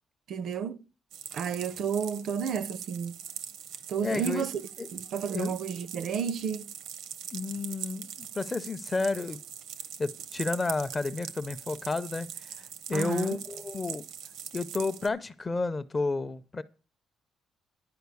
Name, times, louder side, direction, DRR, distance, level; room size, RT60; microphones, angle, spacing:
voice 1, 0.3-0.8 1.3-3.1 3.9-4.6 4.9-6.7 12.9-13.4, right 7 dB, 50° right, 0.4 m, -31 dB
sound 1, 1.1-15.1, right 9 dB, 90° right, 0.8 m, -42 dB
voice 2, 4.0-4.4 4.8-4.9 5.3-5.5 7.3-9.4 10.0-12.3 12.9-14.1 14.5-16.6, left 3 dB, 15° left, 0.4 m, -31 dB
10.5 x 5.1 x 8.1 m
cardioid pair, 175°, 0 cm